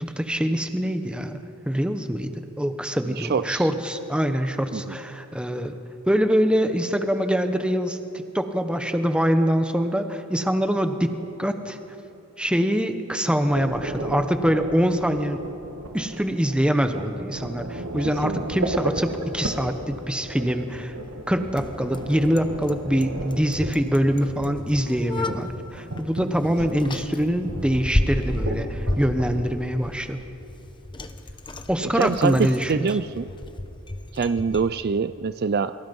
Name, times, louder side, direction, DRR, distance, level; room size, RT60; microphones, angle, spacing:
voice 1, 0.0-5.7 6.1-8.0 8.3-11.1 11.4-11.8 12.4-15.4 15.9-20.9 21.3-30.2 31.7-32.9, equal, 5° right, 7 dB, 1.2 m, -24 dB
voice 2, 3.1-3.7 4.7-5.0 18.2-18.7 31.9-33.3 34.1-35.8, right 5 dB, 45° right, 13 dB, 0.4 m, -25 dB
sound 1, 13.5-29.5, right 2 dB, 75° right, 1.9 m, -35 dB
Bicycle, 18.4-34.7, left 1 dB, 20° left, 1.0 m, -33 dB
29.0 x 24.5 x 5.4 m, 2.9 s
head